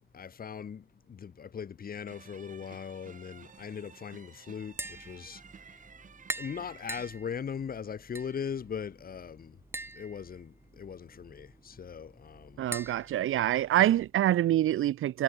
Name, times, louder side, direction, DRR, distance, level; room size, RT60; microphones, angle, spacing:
voice 1, 0.1-5.9 6.4-9.6 9.9-12.7, left 7 dB, 45° left, 6.2 m, -40 dB
sound 1, 2.1-7.1, right 6 dB, 40° right, 5.6 m, -53 dB
Tap, 4.6-14.1, right 2 dB, 10° right, 1.3 m, -45 dB
voice 2, 12.6-15.2, right 12 dB, 80° right, 0.7 m, -26 dB
wide cardioid pair, 170°, 21 cm